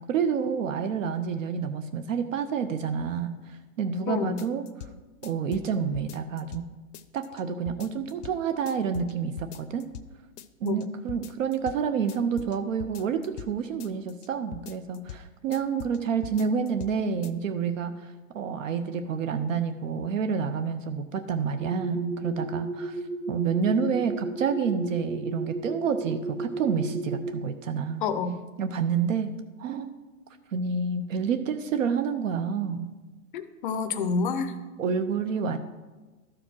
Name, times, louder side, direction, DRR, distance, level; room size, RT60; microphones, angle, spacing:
voice 1, 0.1-4.6 5.2-6.6 7.1-9.9 10.6-28.0 28.6-29.3 29.6-30.0 30.5-32.9 34.8-35.6, right 6 dB, 55° right, 9 dB, 0.7 m, -29 dB
sound 1, 4.4-4.9 5.2-6.7 6.9-7.4 7.7-8.4 8.7-9.1 9.4-10.1 10.4-10.8 11.1-11.8 12.1-13.5 13.8-14.3 14.5-15.2 15.5-16.0 16.2-16.9 17.2-17.3, left 10 dB, 75° left, 0.8 m, -42 dB
sound 2, 21.6-27.4, right 2 dB, 15° right, 0.8 m, -34 dB
voice 2, 28.0-28.4 33.3-34.5, left 5 dB, 35° left, 10 dB, 0.6 m, -28 dB
12.5 x 5.0 x 6.1 m, 1.2 s
hypercardioid pair, 160°, 46 cm